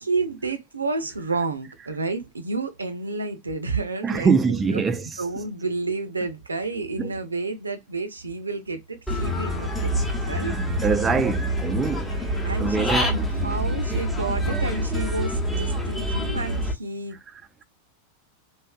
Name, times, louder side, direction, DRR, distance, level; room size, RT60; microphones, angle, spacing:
voice 1, 0.0-4.3 4.7-4.8 5.2-9.9 10.2-10.5 12.4-17.2, right 3 dB, 75° right, 0.5 m, -30 dB
voice 2, 4.0-5.2 7.0-7.1 10.3-12.1 12.6-13.1 17.3-17.6, right 5 dB, 15° right, 0.4 m, -24 dB
Human voice / Bird, 9.1-16.7, equal, 10° left, 0.9 m, -26 dB
3.3 x 2.6 x 2.3 m
figure-of-eight pair, 90°, 0 cm